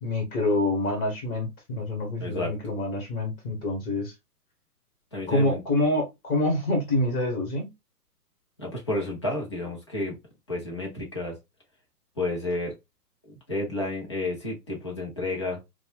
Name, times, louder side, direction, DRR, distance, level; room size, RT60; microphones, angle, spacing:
voice 1, 0.0-4.1 5.3-7.7, left 2 dB, 35° left, 1.1 m, -26 dB
voice 2, 2.2-2.5 5.1-5.6 8.6-10.2 10.5-11.4 12.2-12.7 13.5-15.6, left 2 dB, 20° left, 0.5 m, -31 dB
3.0 x 2.2 x 2.2 m
figure-of-eight pair, 130°, 47 cm